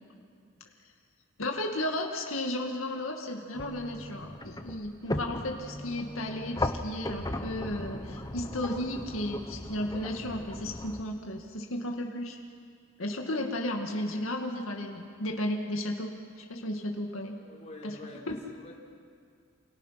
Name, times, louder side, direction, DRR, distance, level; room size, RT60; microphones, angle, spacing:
voice 1, 1.4-12.4 13.0-16.1 16.4-17.4 17.8-17.9 18.3-18.4, left 1 dB, 90° left, 2 dB, 2.1 m, -34 dB
sound 1, 3.5-11.0, left 1 dB, 20° left, 1.1 m, -37 dB
voice 2, 17.4-18.7, left 1 dB, 35° left, -2 dB, 4.0 m, -46 dB
29.0 x 28.5 x 5.9 m, 2.3 s
head